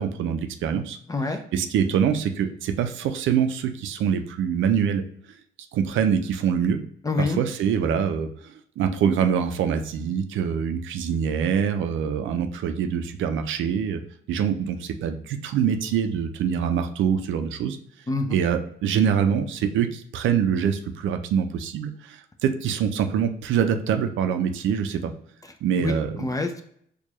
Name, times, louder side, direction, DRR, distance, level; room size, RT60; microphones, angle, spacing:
voice 1, 0.0-1.0 1.5-5.0 5.7-6.8 7.2-14.0 14.3-17.8 18.3-25.1 25.6-26.3, right 7 dB, 75° right, 7 dB, 0.5 m, -24 dB
voice 2, 1.1-1.4 7.0-7.4 18.1-18.4 25.8-26.6, left 3 dB, 15° left, 5 dB, 0.5 m, -26 dB
4.5 x 2.4 x 3.0 m, 0.65 s
cardioid pair, 90°, 20 cm